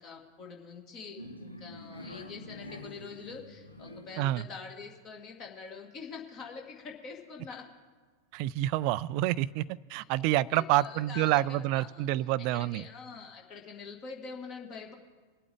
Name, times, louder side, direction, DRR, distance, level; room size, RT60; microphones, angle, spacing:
voice 1, 0.0-7.6 10.5-12.1 12.5-14.9, left 5 dB, 35° left, 1 dB, 2.1 m, -45 dB
sound 1, 1.2-4.2, left 1 dB, 85° left, 1.0 m, -46 dB
voice 2, 8.3-12.8, right 15 dB, 45° right, 21 dB, 0.3 m, -28 dB
23.5 x 8.3 x 3.6 m, 1.4 s
figure-of-eight pair, 90°, 0 cm